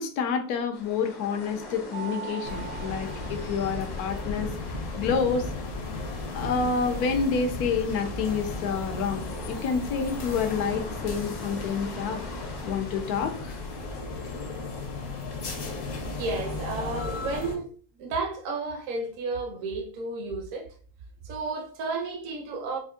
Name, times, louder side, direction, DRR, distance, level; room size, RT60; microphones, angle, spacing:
voice 1, 0.0-4.5 5.0-5.5 6.3-12.2 12.6-13.6, left 5 dB, 85° left, 1.1 m, -28 dB
sound 1, 0.7-14.0, left 2 dB, 45° left, 0.6 m, -45 dB
Mallet percussion, 1.9-4.4, right 10 dB, 85° right, 0.5 m, -42 dB
sound 2, 2.4-17.6, left 2 dB, 60° left, 1.1 m, -35 dB
voice 2, 16.0-17.7 18.0-20.7 21.2-22.8, right 3 dB, 65° right, 0.9 m, -32 dB
4.4 x 2.5 x 2.5 m
omnidirectional pair, 1.6 m